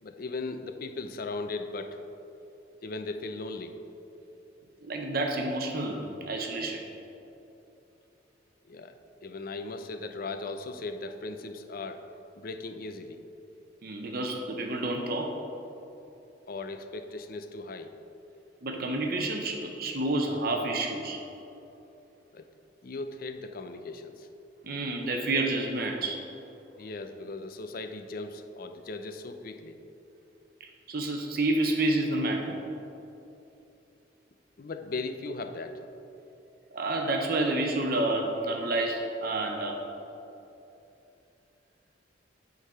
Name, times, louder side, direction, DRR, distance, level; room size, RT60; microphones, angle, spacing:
voice 1, 0.0-2.0 2.8-3.8 8.7-9.0 9.2-12.0 12.4-13.2 16.5-17.9 22.3-22.5 22.8-24.3 26.8-29.8 34.6-35.8, left 3 dB, 50° left, 7 dB, 0.5 m, -38 dB
voice 2, 4.8-6.9 13.8-15.4 18.6-21.2 24.6-26.2 30.6-32.6 36.7-39.8, right 2 dB, 55° right, 2 dB, 0.7 m, -29 dB
9.2 x 3.9 x 5.5 m, 2.9 s
head